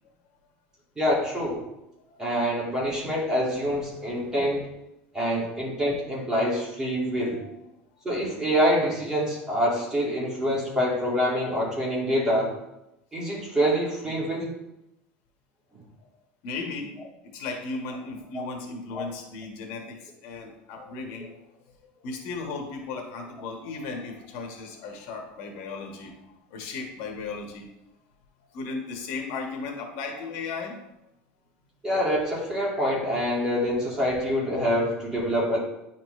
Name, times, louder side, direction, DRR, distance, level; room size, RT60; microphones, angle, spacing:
voice 1, 1.0-1.7 2.2-4.7 5.1-7.4 8.0-12.6 13.1-14.5 18.9-19.0 31.8-35.6, equal, 15° right, -4 dB, 2.0 m, -26 dB
voice 2, 2.1-2.4 5.3-5.4 7.3-7.4 16.4-16.9 17.3-21.4 21.7-26.1 26.5-27.6 28.5-30.8, left 4 dB, 65° left, 2 dB, 1.4 m, -36 dB
10.0 x 4.2 x 3.2 m, 0.89 s
cardioid pair, 160°, 5 cm